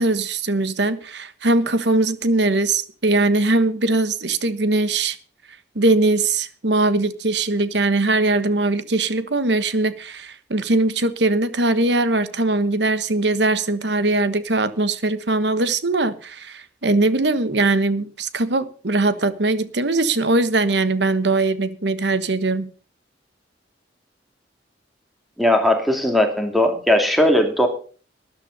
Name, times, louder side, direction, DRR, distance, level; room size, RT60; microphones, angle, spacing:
voice 1, 0.0-5.2 5.7-22.7, right 2 dB, 75° right, 1.3 m, -21 dB
voice 2, 25.4-27.7, left 1 dB, ahead, 2.5 m, -18 dB
13.0 x 11.0 x 5.5 m
head